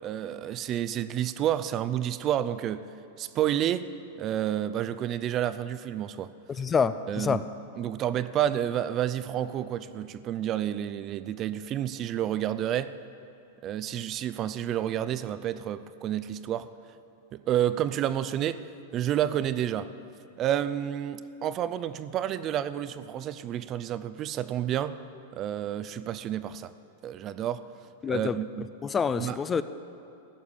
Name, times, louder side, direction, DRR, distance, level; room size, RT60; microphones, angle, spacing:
voice 1, 0.0-2.8 3.2-3.9 4.2-6.3 7.1-7.4 7.8-13.0 13.6-16.7 17.3-18.6 18.9-19.9 20.4-25.0 25.3-26.7 27.0-27.6 28.1-28.7 29.2-29.4, right 11 dB, 35° right, 14 dB, 0.5 m, -30 dB
voice 2, 6.6-7.4 28.0-28.4 28.8-29.6, left 6 dB, 20° left, 13 dB, 0.5 m, -26 dB
14.5 x 7.1 x 9.9 m, 2.8 s
hypercardioid pair, 130°, 0 cm